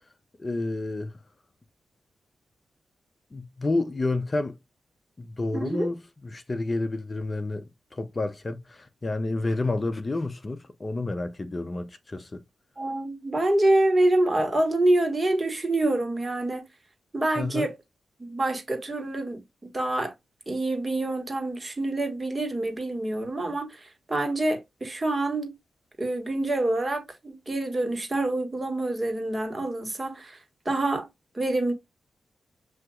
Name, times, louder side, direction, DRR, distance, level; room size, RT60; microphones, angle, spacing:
voice 1, 0.4-1.2 3.3-4.6 5.2-12.4 17.4-17.7, left 2 dB, 35° left, 0.6 m, -30 dB
voice 2, 5.5-5.9 12.8-16.7 17.1-17.7 18.2-20.1 20.5-25.6 26.0-30.4 30.6-31.1 31.3-31.7, right 2 dB, 30° right, 1.7 m, -26 dB
7.4 x 2.8 x 2.4 m
cardioid pair, 55°, 0 cm